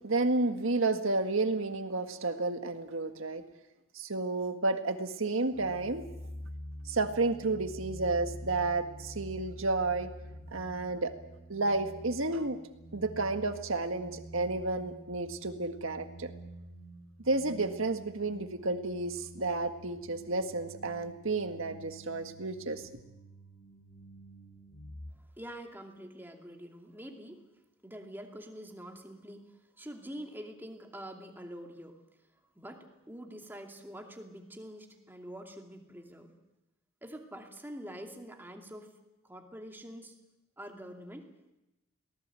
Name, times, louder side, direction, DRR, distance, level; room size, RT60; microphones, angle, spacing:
voice 1, 0.0-3.4 3.9-6.0 6.9-10.1 10.5-11.1 11.5-12.6 12.9-16.3 17.3-22.9, right 3 dB, 65° right, 7 dB, 1.7 m, -31 dB
sound 1, 5.5-25.1, equal, 90° left, 7.4 m, -48 dB
voice 2, 25.4-27.4 27.8-32.0 32.6-36.3 37.0-38.9 39.2-40.1 40.6-41.3, equal, 10° right, 2 dB, 2.4 m, -46 dB
23.5 x 18.5 x 7.7 m, 0.94 s
head